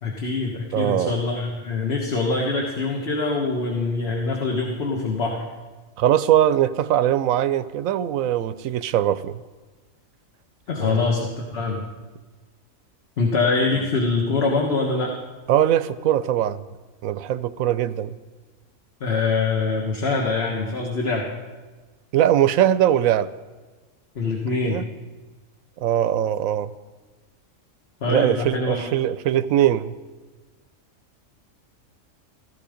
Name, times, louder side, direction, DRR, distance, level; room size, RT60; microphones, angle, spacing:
voice 1, 0.0-5.4 10.7-11.8 13.2-15.1 19.0-21.3 24.1-24.8 28.0-28.9, left 3 dB, 50° left, 0 dB, 1.7 m, -24 dB
voice 2, 0.7-1.1 6.0-9.4 10.8-11.0 15.5-16.6 17.0-18.2 22.1-23.3 24.6-24.8 25.8-26.7 28.0-30.0, right 11 dB, 85° right, 15 dB, 1.0 m, -21 dB
15.5 x 14.0 x 5.1 m, 1.3 s
omnidirectional pair, 1.4 m